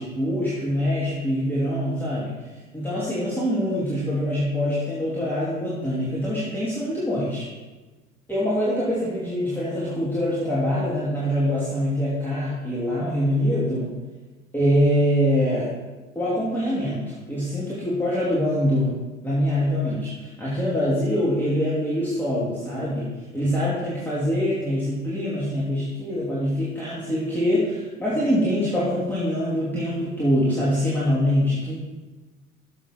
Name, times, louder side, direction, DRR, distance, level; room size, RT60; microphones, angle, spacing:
voice 1, 0.0-2.3 2.7-7.4 8.3-13.9 14.5-15.7 16.1-18.9 19.2-31.7, equal, 5° left, -8 dB, 3.1 m, -24 dB
12.0 x 7.6 x 4.5 m, 1.2 s
figure-of-eight pair, 70°, 40 cm